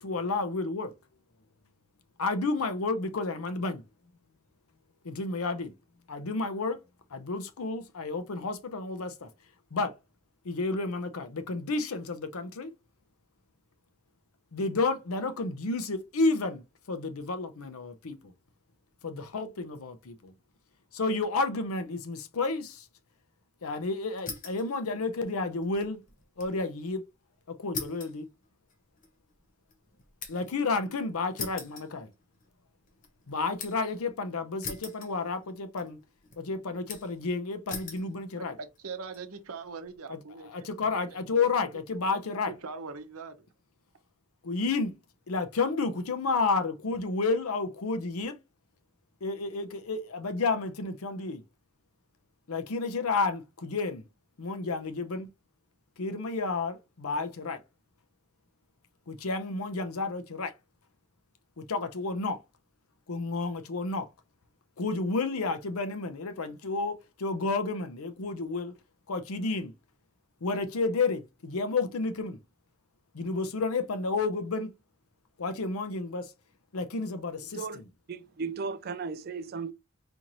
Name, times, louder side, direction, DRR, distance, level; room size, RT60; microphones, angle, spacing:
voice 1, 0.0-0.9 2.2-3.8 5.0-5.7 6.1-6.8 7.1-9.3 9.7-9.9 10.4-12.7 14.5-18.3 19.0-20.3 20.9-22.8 23.6-26.0 26.4-27.0 27.6-28.3 30.3-32.1 33.3-36.0 36.4-38.6 40.1-42.5 44.4-45.0 45.3-48.4 49.2-51.4 52.5-54.0 54.4-55.3 56.0-57.6 59.1-60.5 61.6-62.4 63.1-64.1 64.8-68.7 69.1-69.7 70.4-72.4 73.1-74.7 75.4-76.3 76.7-77.8, left 3 dB, 85° left, 0.6 m, -31 dB
sound 1, 24.2-24.7 25.0-26.6 26.9-27.0 27.7-30.6 31.4-32.5 32.9-33.9 34.6-35.5 35.8-36.4 36.9-37.2 37.7-38.1 38.7-39.2, left 5 dB, 35° left, 0.9 m, -41 dB
voice 2, 38.4-40.7 41.1-41.2 42.5-43.4, right 4 dB, 90° right, 0.7 m, -41 dB
voice 3, 78.1-79.7, right 5 dB, 45° right, 0.3 m, -35 dB
4.4 x 2.9 x 2.5 m
head